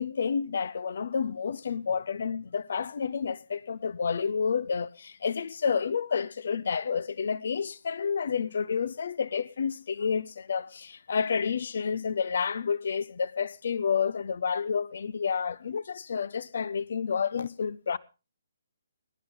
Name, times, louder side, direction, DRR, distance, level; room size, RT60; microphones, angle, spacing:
voice 1, 0.0-18.0, left 6 dB, 60° left, 0.8 m, -30 dB
22.0 x 10.5 x 3.8 m
figure-of-eight pair, 140°, 0 cm